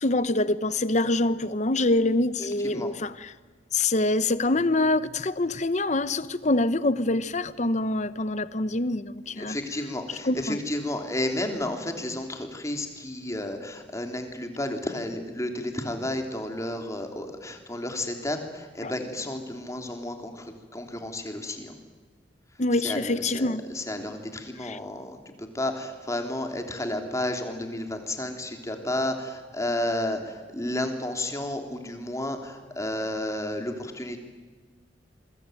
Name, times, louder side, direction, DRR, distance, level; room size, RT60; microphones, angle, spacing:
voice 1, 0.0-3.3 3.7-9.6 10.2-10.6 18.8-18.9 22.6-23.6 24.6-24.8, left 2 dB, 40° left, 1.0 m, -25 dB
voice 2, 9.4-21.7 22.8-34.2, left 1 dB, 15° left, 3.3 m, -32 dB
27.5 x 22.5 x 9.3 m
head